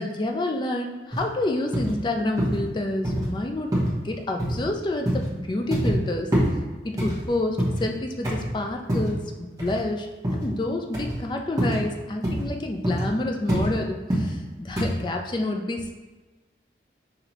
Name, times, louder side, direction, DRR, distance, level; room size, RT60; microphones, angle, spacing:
voice 1, 0.0-3.7 4.0-6.3 6.8-15.9, left 2 dB, 25° left, 3 dB, 0.3 m, -28 dB
sound 1, 1.1-1.2 1.7-1.9 2.4-2.6 3.0-3.3 3.7-4.0 4.4-4.6 5.1-5.3 5.7-6.0 6.3-6.5 7.0-7.9 8.2-8.5 8.9-9.2 9.6-9.8 10.2-10.5 10.9-11.2 11.6-11.8 12.2-12.5 12.8-13.1 13.5-13.7 14.1-14.3 14.8-15.0, equal, 20° right, 1.1 m, -25 dB
5.8 x 2.7 x 2.9 m, 1.3 s
head